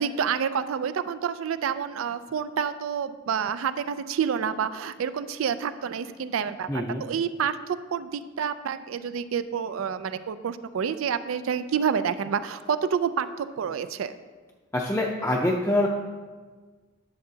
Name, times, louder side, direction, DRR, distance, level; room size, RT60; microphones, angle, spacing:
voice 1, 0.0-14.1, right 7 dB, 90° right, 13 dB, 0.4 m, -28 dB
voice 2, 6.7-7.0 14.7-15.9, left 1 dB, 10° left, -2 dB, 0.5 m, -25 dB
11.0 x 6.9 x 2.8 m, 1.4 s
head